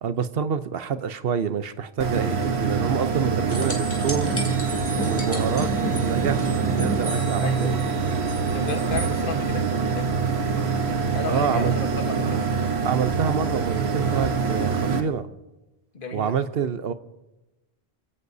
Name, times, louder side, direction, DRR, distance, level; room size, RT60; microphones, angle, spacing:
voice 1, 0.0-4.4 5.0-7.8 11.3-11.7 12.8-15.3 16.1-16.9, right 7 dB, 70° right, 12 dB, 0.9 m, -27 dB
sound 1, 2.0-15.0, right 5 dB, 85° right, 1.3 m, -25 dB
voice 2, 2.2-2.5 5.3-5.6 7.4-7.8 8.5-10.1 11.1-12.4 15.9-16.3, left 4 dB, 55° left, 6 dB, 1.5 m, -33 dB
sound 2, 3.5-9.1 12.1-12.2, right 1 dB, 15° left, 2.8 m, -32 dB
30.0 x 16.5 x 2.7 m, 1.1 s
omnidirectional pair, 1.0 m